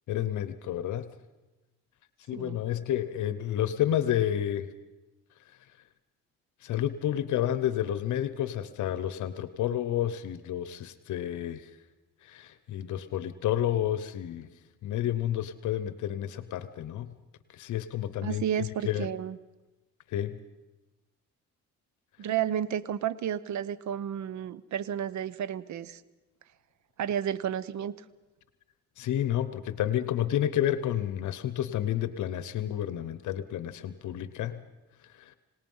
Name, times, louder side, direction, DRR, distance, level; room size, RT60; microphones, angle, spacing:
voice 1, 0.1-1.1 2.3-4.7 6.6-11.7 12.2-14.5 14.8-17.1 17.5-19.1 20.1-20.4 29.0-34.6 35.1-35.4, left 11 dB, 75° left, 13 dB, 0.9 m, -30 dB
voice 2, 18.2-19.4 22.2-26.0 27.0-27.9, right 9 dB, 70° right, 18 dB, 0.9 m, -32 dB
26.0 x 18.5 x 5.6 m, 1.1 s
cardioid pair, 90°, 30 cm